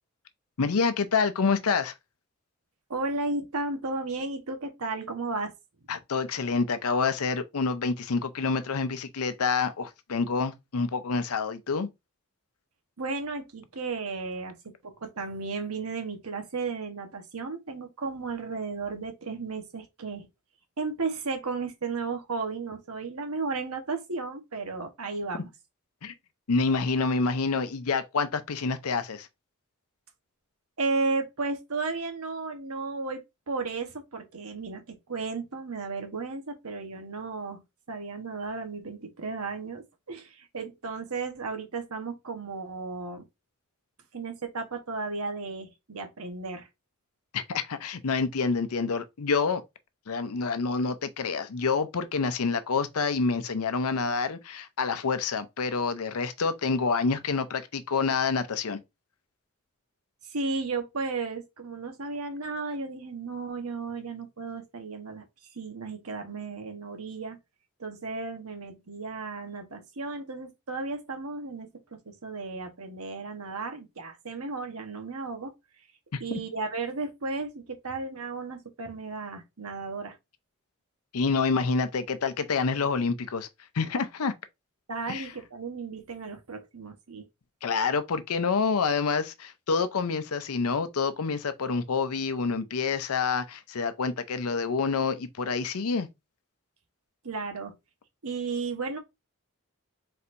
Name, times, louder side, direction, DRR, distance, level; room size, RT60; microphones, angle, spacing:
voice 1, 0.6-1.9 5.9-11.9 26.0-26.1 26.5-29.3 47.3-49.6 50.1-58.8 81.1-83.5 83.7-84.3 85.1-85.3 87.6-96.1, left 4 dB, 85° left, 0.6 m, -27 dB
voice 2, 2.9-5.5 5.9-6.0 13.0-14.6 14.8-20.3 20.8-25.5 30.8-37.6 37.9-43.2 44.1-46.7 60.2-65.2 65.5-67.4 67.8-71.7 72.0-75.5 76.2-80.2 84.9-87.3 97.2-97.7 98.2-99.0, right 3 dB, 85° right, 1.2 m, -34 dB
4.3 x 4.2 x 2.6 m
head